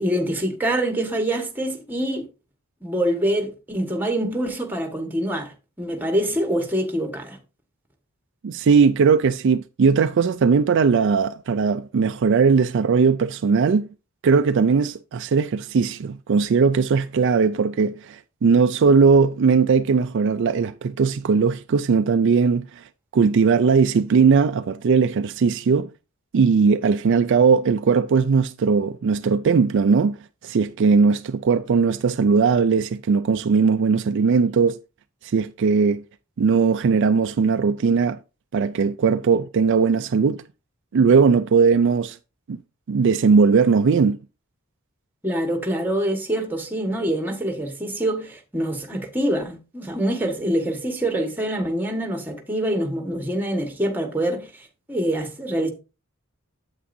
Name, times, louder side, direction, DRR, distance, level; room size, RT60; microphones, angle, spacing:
voice 1, 0.0-2.3 2.8-7.4 45.2-55.7, right 1 dB, 10° right, 1.4 m, -25 dB
voice 2, 8.4-13.9 14.2-22.8 23.1-25.9 26.3-30.2 30.4-34.8 35.2-36.0 36.4-38.2 38.5-40.4 40.9-42.2 42.5-42.6 42.9-44.2, right 5 dB, 60° right, 0.4 m, -19 dB
8.6 x 8.1 x 2.7 m
head